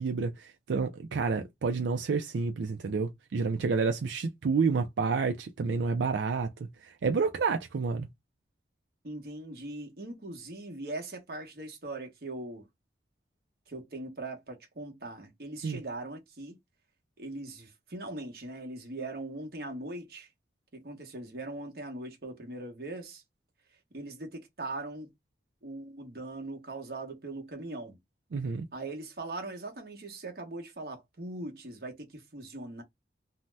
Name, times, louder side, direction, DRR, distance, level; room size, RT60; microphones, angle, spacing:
voice 1, 0.0-6.5 6.8-8.1 15.6-15.8 28.3-28.7, right 4 dB, 90° right, 0.4 m, -29 dB
voice 2, 9.0-12.7 13.7-16.6 17.2-20.3 20.7-23.2 23.9-25.1 25.6-28.0 28.7-32.8, right 2 dB, 55° right, 0.9 m, -40 dB
2.7 x 2.1 x 3.2 m
head